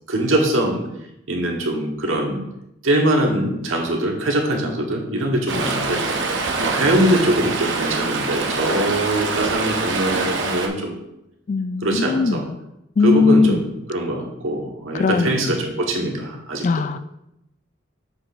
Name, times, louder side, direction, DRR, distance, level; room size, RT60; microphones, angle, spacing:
voice 1, 0.1-0.8 1.3-2.4 2.8-6.3 6.6-10.9 11.8-12.4 13.0-17.0, right 1 dB, 80° right, 1 dB, 1.3 m, -22 dB
Stream, 5.5-10.7, right 3 dB, 65° right, 0.8 m, -24 dB
voice 2, 11.5-12.6 13.0-13.6 14.9-15.5 16.6-17.0, left 4 dB, 40° left, 11 dB, 0.3 m, -19 dB
7.8 x 6.0 x 2.5 m, 0.83 s
head